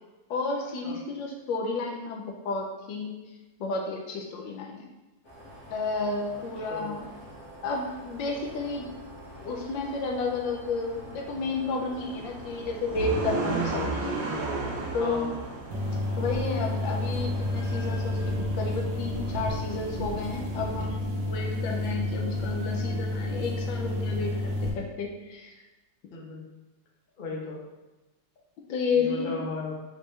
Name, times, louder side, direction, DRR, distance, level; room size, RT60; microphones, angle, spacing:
voice 1, 0.3-3.2 3.6-4.9 5.7-7.1 7.6-8.9 9.4-14.2 14.9-15.4 16.2-25.5 28.7-29.3, left 3 dB, 85° left, 1 dB, 1.4 m, -31 dB
sound 1, 5.2-18.3, equal, 60° left, 2.1 m, -45 dB
voice 2, 6.7-7.0 15.0-15.3 26.1-26.4 27.2-27.6 28.9-29.8, left 4 dB, 35° left, -4 dB, 0.8 m, -36 dB
sound 2, 11.9-20.9, right 2 dB, 60° right, 1.1 m, -35 dB
sound 3, 15.7-24.7, left 1 dB, 75° right, 1.4 m, -30 dB
5.0 x 3.2 x 3.2 m, 1.1 s
omnidirectional pair, 2.0 m